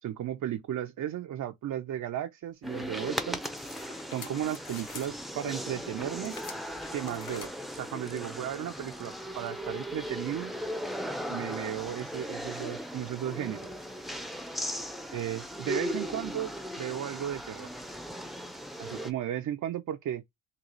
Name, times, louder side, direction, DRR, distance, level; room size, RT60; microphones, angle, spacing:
voice 1, 0.0-3.4 4.1-6.4 6.9-10.5 11.3-13.7 15.1-17.7 18.8-20.2, right 11 dB, 55° right, 0.6 m, -35 dB
sound 1, 2.6-19.1, equal, ahead, 0.6 m, -38 dB
sound 2, 3.4-5.1 6.2-7.5, left 6 dB, 60° left, 1.3 m, -47 dB
3.9 x 2.3 x 3.0 m
cardioid pair, 90°, 37 cm